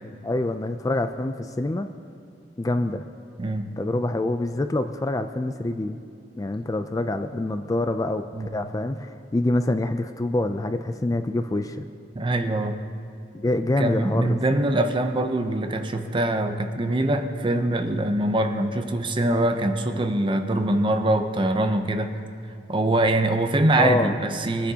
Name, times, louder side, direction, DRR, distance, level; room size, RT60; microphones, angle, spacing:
voice 1, 0.0-1.9 2.6-3.1 3.8-6.0 6.4-8.3 8.5-11.9 13.3-14.4 23.8-24.2, left 2 dB, 20° left, 8 dB, 0.3 m, -26 dB
voice 2, 12.1-12.8 13.8-22.2 22.7-24.7, right 1 dB, 30° right, 7 dB, 0.6 m, -23 dB
21.0 x 9.8 x 2.8 m, 2.4 s
head